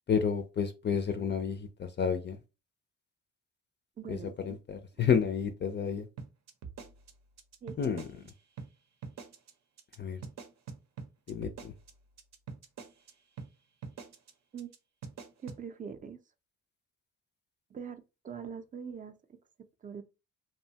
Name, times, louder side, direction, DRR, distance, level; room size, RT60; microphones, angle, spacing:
voice 1, 0.1-2.4 4.1-6.1 7.8-8.1 10.0-10.2 11.3-11.7, left 7 dB, 35° left, 0.4 m, -30 dB
voice 2, 4.0-4.6 7.6-8.0 14.5-14.7 15.4-16.2 17.7-19.2 19.6-20.0, right 6 dB, 25° right, 0.4 m, -43 dB
sound 1, 6.2-8.3 8.6-8.7 9.0-9.5 9.8-10.0 10.2-13.1 13.4-13.5 13.8-14.3 14.6-14.8 15.0-15.6, right 5 dB, 60° right, 0.6 m, -44 dB
2.7 x 2.2 x 2.7 m
cardioid pair, 90°, 30 cm